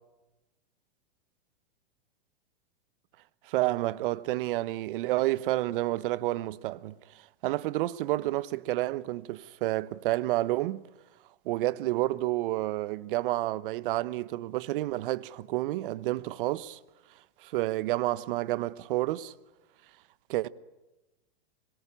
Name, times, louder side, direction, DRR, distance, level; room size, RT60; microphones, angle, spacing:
voice 1, 3.4-10.8 11.4-16.8 17.4-19.3 20.3-20.5, right 17 dB, 50° right, 1.0 m, -30 dB
25.0 x 22.5 x 10.0 m
hypercardioid pair, 145°, 33 cm